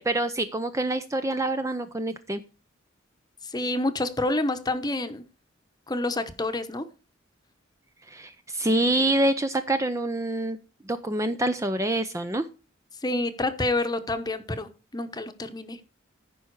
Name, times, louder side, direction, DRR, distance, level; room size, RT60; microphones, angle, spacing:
voice 1, 0.0-2.4 8.1-10.6 10.9-12.5, right 1 dB, 15° right, 9 dB, 0.5 m, -26 dB
voice 2, 3.4-5.2 5.9-6.9 13.0-15.8, left 2 dB, 20° left, 9 dB, 1.0 m, -28 dB
14.0 x 5.7 x 4.7 m, 0.32 s
head